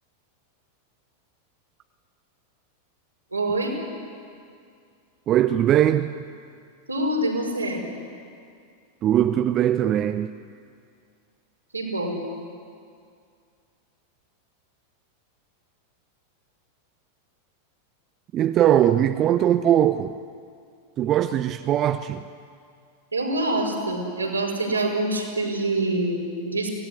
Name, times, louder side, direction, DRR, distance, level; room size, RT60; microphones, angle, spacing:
voice 1, 3.3-3.7 6.9-7.8 11.7-12.2 23.1-26.7, right 2 dB, 80° right, 5.1 m, -25 dB
voice 2, 5.3-6.1 9.0-10.3 18.3-20.2 21.0-22.2, right 11 dB, 30° right, 0.7 m, -20 dB
24.0 x 18.0 x 9.9 m
figure-of-eight pair, 90°, 0 cm